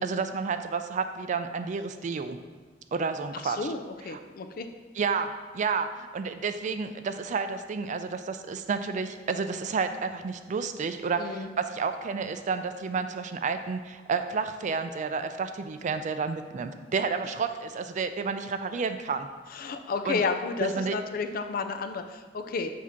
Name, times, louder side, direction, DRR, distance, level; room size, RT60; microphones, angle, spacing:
voice 1, 0.0-2.4 2.9-3.6 4.1-4.2 4.9-19.3 20.0-20.2 20.6-21.0, right 5 dB, 40° right, 9 dB, 0.3 m, -30 dB
voice 2, 3.4-4.7 11.2-11.5 19.5-22.7, left 4 dB, 50° left, 8 dB, 0.4 m, -32 dB
7.3 x 2.8 x 5.7 m, 1.3 s
head